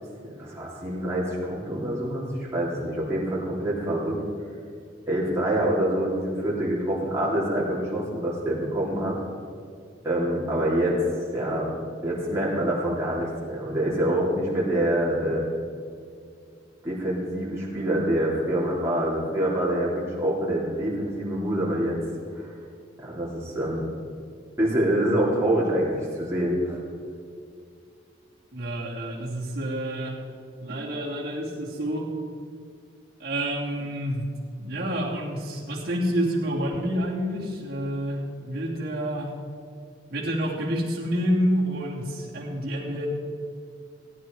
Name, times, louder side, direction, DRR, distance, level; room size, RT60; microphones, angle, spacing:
voice 1, 0.4-4.2 5.1-9.2 10.0-11.0 11.3-11.7 12.0-15.4 16.8-22.0 22.3-22.5 23.0-23.9 24.6-26.8, right 1 dB, 15° right, -7 dB, 3.3 m, -26 dB
voice 2, 28.5-30.3 30.6-32.1 33.2-34.3 34.5-39.4 40.1-43.1, equal, 55° right, -5 dB, 2.7 m, -28 dB
17.0 x 10.0 x 4.7 m, 2.3 s
head